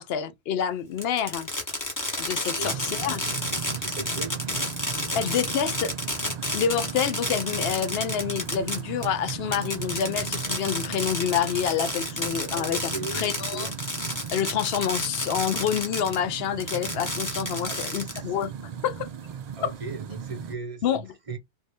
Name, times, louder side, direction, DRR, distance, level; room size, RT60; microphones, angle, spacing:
voice 1, 0.0-1.5 2.2-3.2 5.1-5.9 6.5-13.7 14.3-18.5 18.8-19.1 19.6-19.7 20.8-21.1, left 8 dB, 65° left, 0.7 m, -28 dB
Fireworks, 1.0-16.2 16.6-18.4, left 1 dB, 15° left, 1.1 m, -31 dB
sound 1, 2.7-20.5, right 8 dB, 60° right, 0.4 m, -37 dB
voice 2, 3.7-4.7 5.1-5.2 12.5-14.0 17.6-18.4 19.5-21.4, right 3 dB, 30° right, 1.0 m, -38 dB
3.3 x 2.6 x 3.4 m
omnidirectional pair, 1.2 m